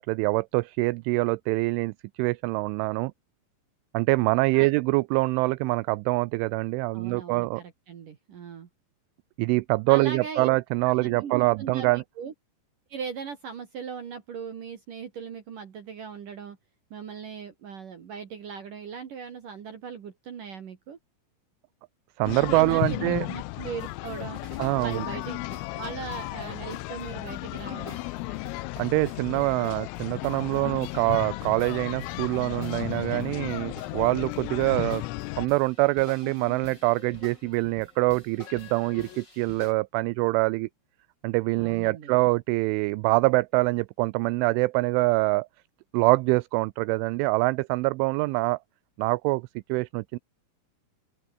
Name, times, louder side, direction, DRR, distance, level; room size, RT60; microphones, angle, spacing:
voice 1, 0.0-3.1 3.9-7.6 9.4-12.0 22.2-23.3 24.6-25.1 28.8-35.1 35.4-40.7 41.2-45.5 45.9-48.6 49.0-50.2, right 24 dB, 80° right, 2.9 m, -25 dB
voice 2, 6.9-8.7 9.9-10.5 10.9-12.3 12.9-16.6 16.9-21.0 22.3-24.4 24.7-25.4 25.7-28.0 41.6-42.2, right 6 dB, 50° right, 3.0 m, -39 dB
sound 1, 22.2-35.5, left 21 dB, 85° left, 3.4 m, -34 dB
sound 2, 23.8-39.7, left 2 dB, 20° left, 8.3 m, -49 dB
sound 3, 27.3-32.0 33.3-35.7 36.2-39.2, left 10 dB, 55° left, 3.1 m, -50 dB
open air
omnidirectional pair, 5.8 m